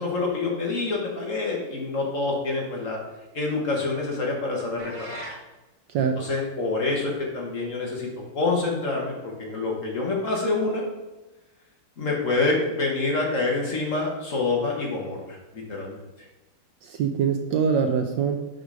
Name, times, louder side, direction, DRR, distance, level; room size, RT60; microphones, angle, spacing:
voice 1, 0.0-3.0 3.3-5.2 6.2-8.1 8.3-10.8 12.0-16.0, left 3 dB, 40° left, -2 dB, 1.5 m, -27 dB
sound 1, 4.8-5.4, right 1 dB, 55° right, 0.3 m, -38 dB
voice 2, 5.9-6.2 16.8-18.5, right 6 dB, 75° right, 5 dB, 1.1 m, -24 dB
6.3 x 5.0 x 5.0 m, 1.1 s
omnidirectional pair, 2.4 m